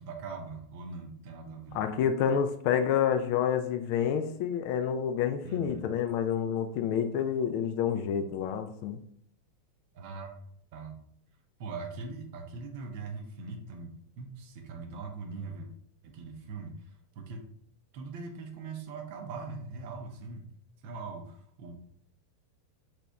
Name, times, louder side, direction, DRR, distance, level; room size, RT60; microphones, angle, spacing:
voice 1, 0.0-1.8 5.4-5.9 9.9-10.4 10.7-11.0 11.6-15.7 16.0-16.8 17.2-17.5 17.9-20.4 20.8-21.7, right 4 dB, 50° right, 5 dB, 0.6 m, -41 dB
voice 2, 1.7-9.0, left 8 dB, 45° left, 8 dB, 0.3 m, -28 dB
4.1 x 2.9 x 2.3 m, 0.64 s
figure-of-eight pair, 90°, 0 cm